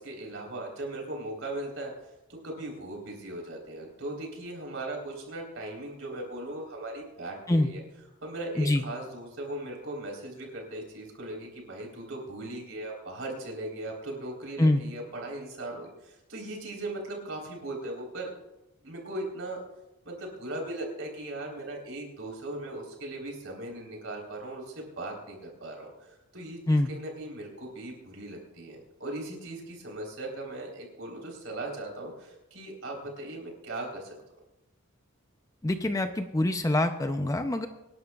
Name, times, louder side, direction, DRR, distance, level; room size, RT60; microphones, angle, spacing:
voice 1, 0.0-2.1 2.4-7.8 8.2-18.3 18.8-19.6 20.0-34.2, right 1 dB, 60° right, 0 dB, 3.8 m, -38 dB
voice 2, 35.6-37.7, left 1 dB, 15° left, 8 dB, 0.5 m, -25 dB
25.0 x 11.0 x 2.4 m, 0.97 s
head